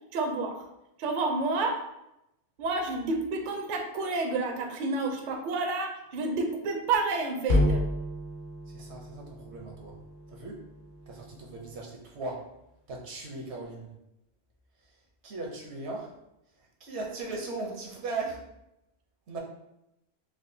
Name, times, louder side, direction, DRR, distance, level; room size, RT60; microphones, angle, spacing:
voice 1, 0.1-0.6 1.0-1.8 2.6-7.8, right 3 dB, 55° right, 2 dB, 0.6 m, -29 dB
sound 1, 7.4-11.8, left 1 dB, 60° left, 1.0 m, -31 dB
voice 2, 8.7-9.9 10.3-10.6 11.1-12.4 12.9-13.9 15.2-16.1 16.8-18.4 19.3-19.4, right 3 dB, 80° right, -1 dB, 1.1 m, -38 dB
4.8 x 2.3 x 2.6 m, 0.85 s
omnidirectional pair, 1.1 m